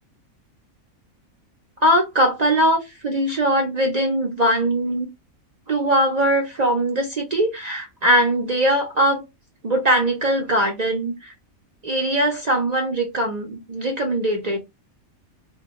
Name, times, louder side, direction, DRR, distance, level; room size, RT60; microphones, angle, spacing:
voice 1, 1.8-5.1 5.7-9.2 9.6-11.1 11.8-14.6, right 1 dB, 65° right, 0.4 m, -21 dB
2.2 x 2.2 x 2.7 m
omnidirectional pair, 1.5 m